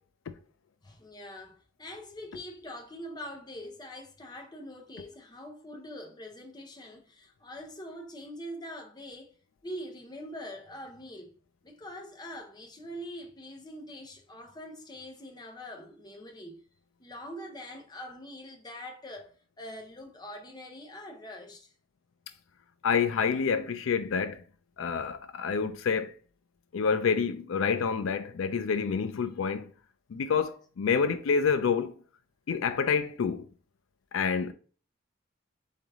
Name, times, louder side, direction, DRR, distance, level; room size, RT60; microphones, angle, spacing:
voice 1, 0.8-9.3 9.6-11.3 11.6-16.6 17.0-21.7, equal, 20° left, 0.7 m, -43 dB
voice 2, 22.8-24.4 24.8-26.1 26.7-29.7 30.1-31.9 32.5-33.5 34.1-34.5, left 6 dB, 85° left, 0.4 m, -28 dB
4.0 x 3.3 x 3.5 m
head